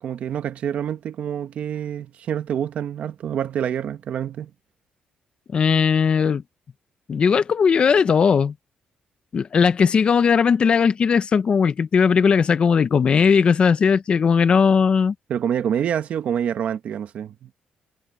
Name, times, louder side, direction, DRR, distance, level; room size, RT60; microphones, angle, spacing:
voice 1, 0.0-4.5 15.3-17.5, right 9 dB, 60° right, 1.3 m, -27 dB
voice 2, 5.5-6.4 7.1-8.5 9.3-15.1, left 6 dB, 40° left, 0.9 m, -18 dB
cardioid pair, 125°, 3 cm